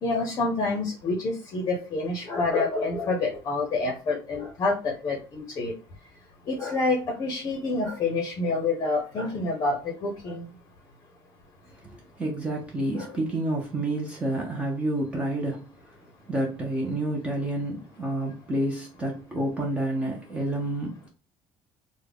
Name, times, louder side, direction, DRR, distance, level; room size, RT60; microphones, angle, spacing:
voice 1, 0.0-5.7 6.5-10.5 12.9-13.1, left 3 dB, 35° left, 0.7 m, -27 dB
voice 2, 11.9-15.6 16.3-21.1, right 1 dB, 15° right, 0.6 m, -29 dB
3.5 x 2.1 x 3.4 m
cardioid pair, 170°, 10 cm